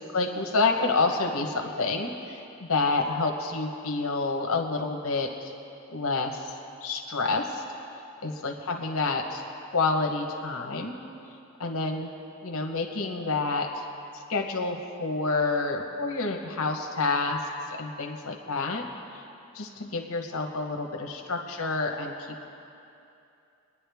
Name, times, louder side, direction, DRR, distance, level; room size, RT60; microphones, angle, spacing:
voice 1, 0.1-5.5 5.9-7.6 8.2-9.4 9.7-11.0 11.6-12.1 12.4-13.8 14.1-18.8 19.1-19.2 19.5-22.1, left 3 dB, 75° left, 2 dB, 1.0 m, -28 dB
22.5 x 9.9 x 3.5 m, 2.7 s
head